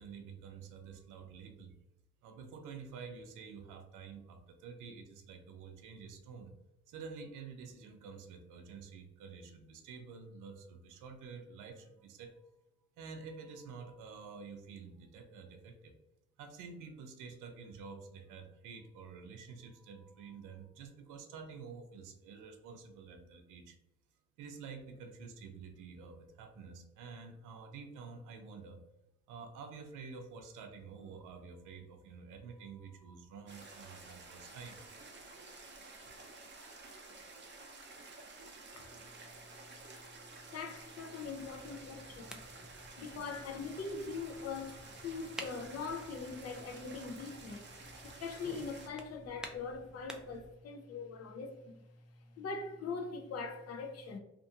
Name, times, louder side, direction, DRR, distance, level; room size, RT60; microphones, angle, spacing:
voice 1, 0.0-1.7 2.2-6.5 6.9-12.4 13.0-15.9 16.4-23.8 24.4-28.8 29.3-34.8 36.5-36.7, right 5 dB, 90° right, 0.5 m, -49 dB
sound 1, 33.5-48.9, right 3 dB, 40° right, 0.6 m, -52 dB
voice 2, 40.5-42.4 43.0-47.6 48.2-51.8 52.4-54.2, left 4 dB, 55° left, 0.5 m, -42 dB
sound 2, 41.2-50.5, right 1 dB, 5° right, 0.3 m, -53 dB
2.5 x 2.5 x 2.7 m
cardioid pair, 90°, 30 cm